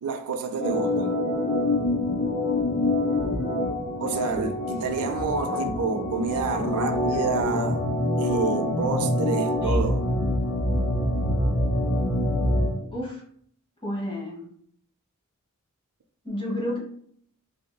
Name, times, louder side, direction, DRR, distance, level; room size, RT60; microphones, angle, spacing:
voice 1, 0.0-1.2 4.0-7.9 8.2-10.0, right 4 dB, 90° right, 0.4 m, -28 dB
Organ, 0.6-12.7, left 1 dB, 75° left, 1.1 m, -25 dB
voice 2, 12.9-13.2 13.8-14.5 16.2-16.8, left 1 dB, 25° left, 1.0 m, -31 dB
3.4 x 2.7 x 2.2 m
head